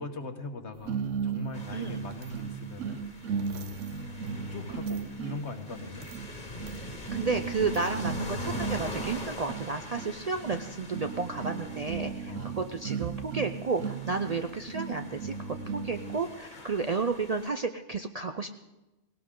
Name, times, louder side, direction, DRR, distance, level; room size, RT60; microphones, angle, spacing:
voice 1, 0.0-3.0 3.7-4.1 4.5-6.1 12.3-12.6 16.5-16.8, left 2 dB, 65° left, 6 dB, 1.6 m, -41 dB
sound 1, 0.9-16.3, right 6 dB, 80° right, 1.1 m, -36 dB
sound 2, 1.5-17.5, left 2 dB, 40° left, 1.8 m, -44 dB
voice 2, 7.1-18.5, right 4 dB, 45° right, 7 dB, 0.5 m, -32 dB
18.0 x 17.5 x 3.8 m, 1.0 s
omnidirectional pair, 1.3 m